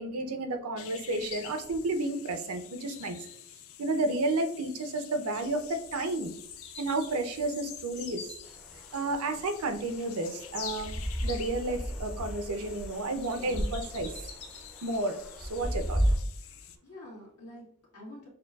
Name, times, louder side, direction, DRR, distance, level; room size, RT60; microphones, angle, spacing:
voice 1, 0.0-3.2 3.8-6.3 6.8-8.3 8.9-11.0 11.2-14.1 14.8-16.0, right 2 dB, 80° right, 6 dB, 0.6 m, -31 dB
sound 1, 0.8-16.8, left 10 dB, 65° left, 0.4 m, -48 dB
Bird vocalization bird call bird song, 5.4-15.0, left 4 dB, 50° left, 0.9 m, -50 dB
sound 2, 8.4-16.2, equal, 5° right, 0.4 m, -34 dB
voice 2, 13.3-13.7 16.4-16.6 16.8-18.3, left 1 dB, 85° left, -3 dB, 1.5 m, -48 dB
6.4 x 2.3 x 2.3 m, 0.65 s
head